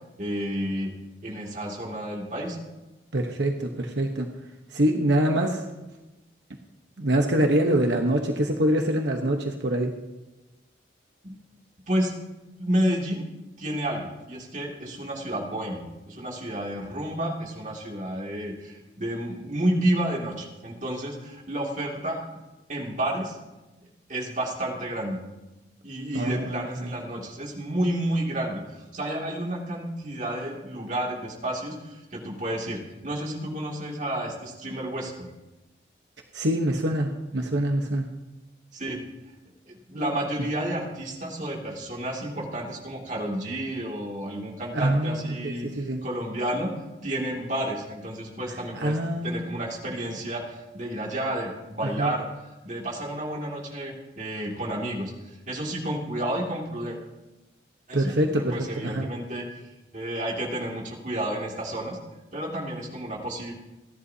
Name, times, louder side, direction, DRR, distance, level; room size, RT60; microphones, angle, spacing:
voice 1, 0.2-0.9 1.2-2.6 11.2-11.4 11.9-12.1 12.6-13.2 13.6-22.4 22.7-23.4 24.1-25.2 25.8-35.3 38.7-39.0 39.7-46.7 47.0-49.0 49.2-52.3 52.6-57.0 57.9-58.2 58.5-59.6 59.9-62.0 62.3-63.5, right 1 dB, 40° right, -1 dB, 2.5 m, -31 dB
voice 2, 3.1-4.3 4.7-5.6 7.0-9.9 26.1-26.5 36.3-38.1 44.7-46.0 48.8-49.5 52.0-52.1 57.9-59.1, right 1 dB, 75° right, 3 dB, 1.1 m, -25 dB
29.0 x 11.0 x 2.8 m, 1.1 s
head